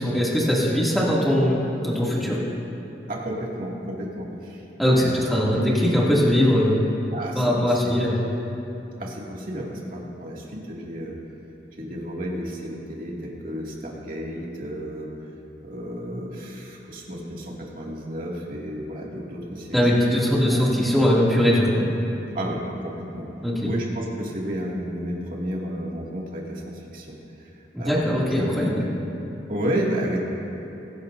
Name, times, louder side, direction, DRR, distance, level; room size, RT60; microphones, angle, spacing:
voice 1, 0.0-2.4 4.8-6.8 7.3-8.1 19.7-21.7 23.4-23.7 27.7-28.9, equal, ahead, -6 dB, 2.5 m, -21 dB
voice 2, 3.1-5.3 7.1-7.7 9.0-11.2 11.8-15.1 15.6-19.8 20.4-20.7 22.3-23.3 23.7-27.5 27.8-28.3 29.5-30.2, equal, 50° right, -3 dB, 2.3 m, -32 dB
23.0 x 11.5 x 2.7 m, 2.9 s
head